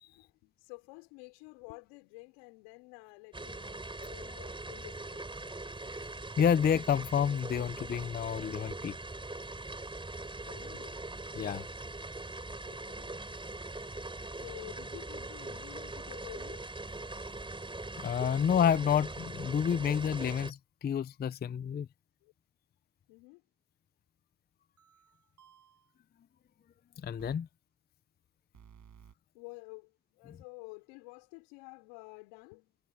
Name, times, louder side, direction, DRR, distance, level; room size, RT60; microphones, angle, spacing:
voice 1, 0.1-5.4 8.6-8.8 10.4-11.0 12.6-13.1 14.3-16.7 22.2-22.3 23.1-23.4 29.3-32.8, left 29 dB, 80° left, 4.6 m, -51 dB
sound 1, 3.3-20.5, right 2 dB, 10° right, 4.3 m, -42 dB
voice 2, 6.4-8.9 11.4-11.6 18.0-21.9 27.0-27.5 30.3-30.4, left 8 dB, 20° left, 0.5 m, -29 dB
sound 2, 16.9-18.7 24.8-25.9 27.2-27.4 28.5-29.1, right 8 dB, 40° right, 4.9 m, -59 dB
supercardioid pair, 90°, 48 cm